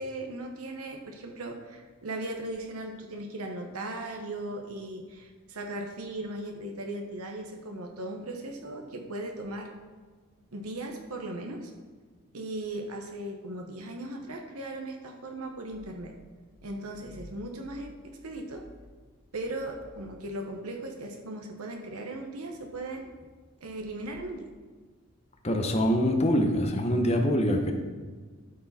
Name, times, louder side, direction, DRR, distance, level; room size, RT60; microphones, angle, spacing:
voice 1, 0.0-9.7 10.5-11.7 12.3-16.1 16.6-18.7 19.3-23.1 23.6-24.5, right 1 dB, 85° right, 2 dB, 1.0 m, -38 dB
voice 2, 25.4-27.7, equal, 30° left, 3 dB, 0.9 m, -24 dB
13.0 x 4.8 x 4.2 m, 1.4 s
head